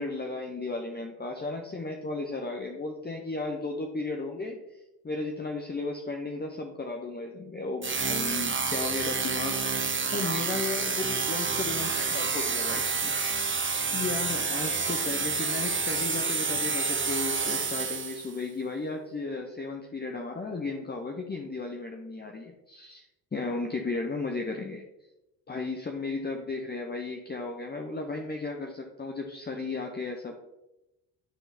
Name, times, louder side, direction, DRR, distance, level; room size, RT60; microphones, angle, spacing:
voice 1, 0.0-9.5 9.9-13.5 13.9-23.1 23.3-24.8 25.5-30.3, left 3 dB, 20° left, 2 dB, 0.9 m, -35 dB
sound 1, 7.8-18.4, right 4 dB, 25° right, 1.1 m, -29 dB
11.5 x 3.8 x 4.1 m, 0.96 s
supercardioid pair, 60°, 48 cm